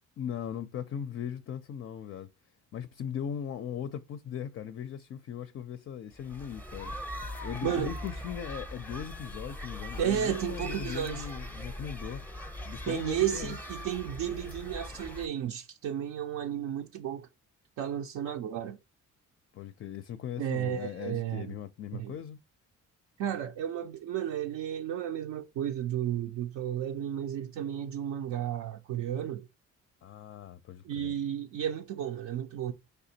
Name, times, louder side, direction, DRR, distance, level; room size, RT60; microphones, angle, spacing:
voice 1, 0.2-2.3 2.7-6.9 7.4-13.6 19.5-22.4 30.0-31.1, left 8 dB, 45° left, 0.4 m, -39 dB
sound 1, 6.2-15.3, left 1 dB, 5° left, 0.6 m, -41 dB
voice 2, 7.6-7.9 10.0-11.3 12.9-17.3 17.8-18.8 20.4-21.6 21.9-22.2 23.2-29.5 30.8-32.7, right 10 dB, 75° right, 0.5 m, -33 dB
4.9 x 3.4 x 2.7 m
cardioid pair, 90°, 30 cm